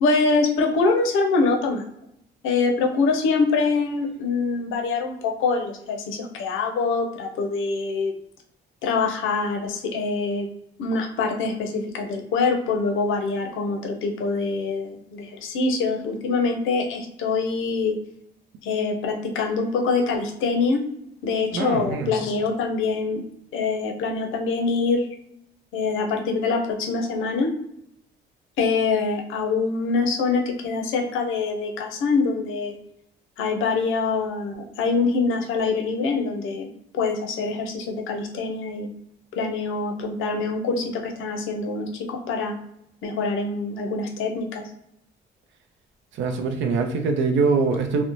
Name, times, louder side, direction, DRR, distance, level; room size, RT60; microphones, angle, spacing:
voice 1, 0.0-1.8 2.4-8.1 8.8-10.5 10.8-17.9 18.6-20.8 21.2-23.2 23.5-25.0 25.7-27.5 28.6-32.8 33.4-36.7 36.9-38.9 39.3-42.6 43.0-44.6, left 4 dB, 85° left, 3 dB, 0.5 m, -24 dB
voice 2, 21.5-22.1 46.2-48.0, right 4 dB, 70° right, 5 dB, 0.5 m, -23 dB
2.5 x 2.1 x 2.9 m, 0.76 s
cardioid pair, 90°, 20 cm